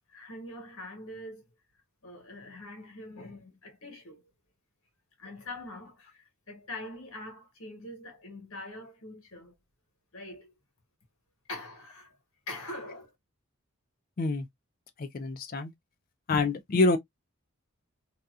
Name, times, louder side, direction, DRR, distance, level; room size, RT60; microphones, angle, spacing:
voice 1, 0.1-1.5 2.0-4.2 5.2-9.5 10.1-10.5 11.5-12.2 12.5-13.1, left 1 dB, 80° left, 1.3 m, -43 dB
voice 2, 15.0-15.7 16.3-17.0, left 3 dB, 40° left, 0.4 m, -26 dB
2.8 x 2.2 x 2.3 m
head